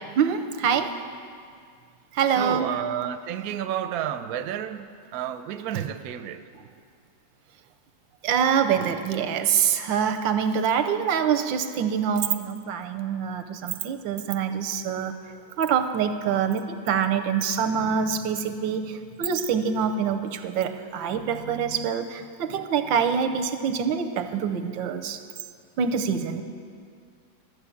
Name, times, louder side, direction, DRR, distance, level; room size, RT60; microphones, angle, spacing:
voice 1, 0.2-0.9 2.1-2.7 8.2-15.1 15.6-25.2 25.8-26.4, right 7 dB, 85° right, 8 dB, 1.4 m, -25 dB
voice 2, 2.4-6.4 21.1-21.9, right 10 dB, 65° right, 10 dB, 0.9 m, -32 dB
13.0 x 8.6 x 7.0 m, 2.2 s
omnidirectional pair, 2.0 m